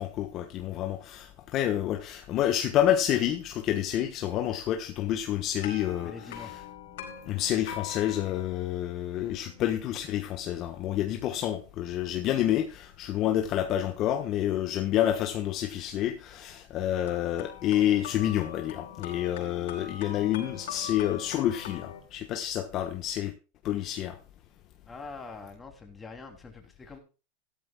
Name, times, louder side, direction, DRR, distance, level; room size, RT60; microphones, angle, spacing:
voice 1, 0.0-6.5 7.3-23.3 23.6-24.2, left 11 dB, 40° left, 1.3 m, -28 dB
sound 1, 5.6-15.6 17.1-22.0, left 9 dB, 80° left, 4.7 m, -44 dB
voice 2, 6.0-6.6 24.9-27.0, left 4 dB, 15° left, 3.1 m, -44 dB
15.5 x 12.5 x 2.3 m
supercardioid pair, 140°, 0 cm